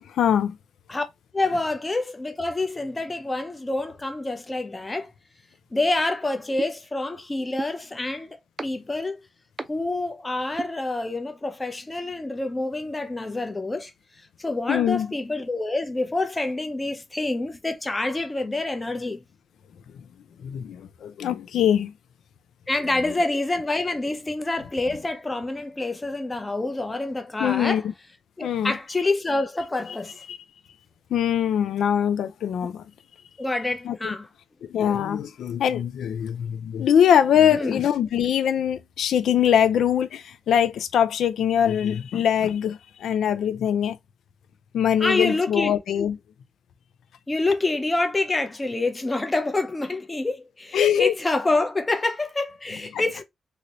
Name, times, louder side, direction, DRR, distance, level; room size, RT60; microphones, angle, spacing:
voice 1, 0.2-0.6 14.7-15.1 20.4-21.9 27.4-27.9 28.4-28.7 30.3-30.4 31.1-32.8 33.8-34.1 34.7-44.0 44.7-46.2 50.7-51.1 52.9-53.0, left 9 dB, 80° left, 0.4 m, -22 dB
voice 2, 1.3-5.1 5.7-8.3 8.6-9.2 9.7-13.9 14.4-19.2 22.7-27.8 28.4-30.2 33.4-34.3 37.5-37.8 45.0-45.8 47.3-53.2, left 2 dB, 20° left, 0.6 m, -27 dB
sound 1, 6.6-6.7 7.6-7.7 8.6-8.7 9.6-9.7 10.6-10.7, right 3 dB, 25° right, 0.5 m, -31 dB
2.8 x 2.6 x 3.0 m
cardioid pair, 115°, 0 cm